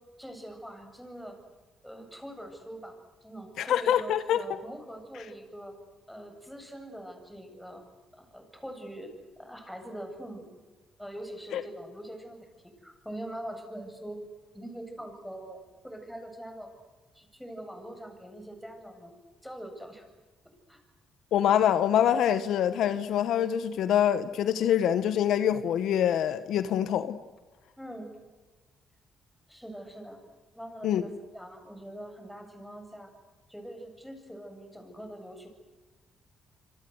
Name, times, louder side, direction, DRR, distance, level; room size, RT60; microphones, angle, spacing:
voice 1, 0.2-1.4 1.8-5.8 6.1-7.8 8.2-9.1 9.4-10.5 11.0-12.4 12.8-14.2 14.5-16.7 17.1-19.1 19.4-20.0 20.7-20.8 27.8-28.1 29.5-30.2 30.6-33.1 33.5-35.5, right 1 dB, ahead, 7.9 m, -43 dB
voice 2, 3.6-4.4 11.5-11.6 21.3-27.2 30.8-31.0, left 10 dB, 80° left, 1.3 m, -25 dB
27.5 x 26.0 x 8.1 m
cardioid pair, 90°, 0 cm